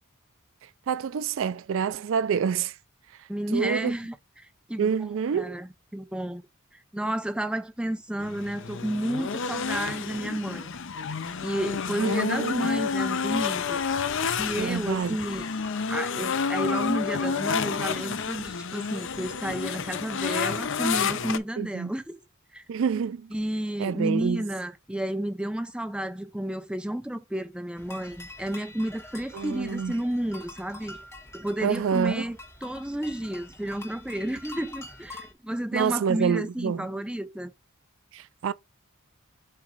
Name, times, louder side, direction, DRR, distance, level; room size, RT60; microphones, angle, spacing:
voice 1, 0.6-2.8 3.1-3.9 4.8-5.6 12.0-12.5 14.6-15.2 21.6-21.9 22.7-23.3 23.8-24.5 29.3-29.9 31.6-32.3 35.7-36.9 38.1-38.5, right 7 dB, 65° right, 0.3 m, -27 dB
voice 2, 3.3-4.9 5.3-6.4 6.9-10.8 11.4-13.8 14.4-15.5 15.9-22.1 22.5-22.6 23.3-31.0 31.3-37.5, right 1 dB, 5° right, 0.6 m, -31 dB
sound 1, 8.2-21.4, left 5 dB, 60° left, 0.6 m, -29 dB
sound 2, 27.8-35.3, left 2 dB, 15° left, 1.6 m, -45 dB
7.6 x 3.0 x 4.7 m
head